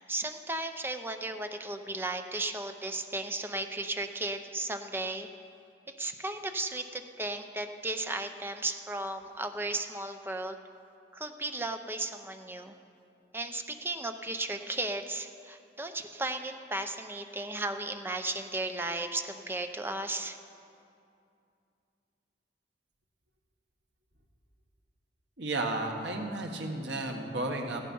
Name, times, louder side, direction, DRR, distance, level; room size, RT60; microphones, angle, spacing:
voice 1, 0.0-5.3 5.9-10.6 11.1-12.8 13.3-20.4, right 2 dB, 15° right, 6 dB, 0.6 m, -35 dB
voice 2, 25.4-27.9, right 2 dB, 85° right, 2 dB, 1.5 m, -33 dB
15.5 x 11.0 x 5.5 m, 2.5 s
head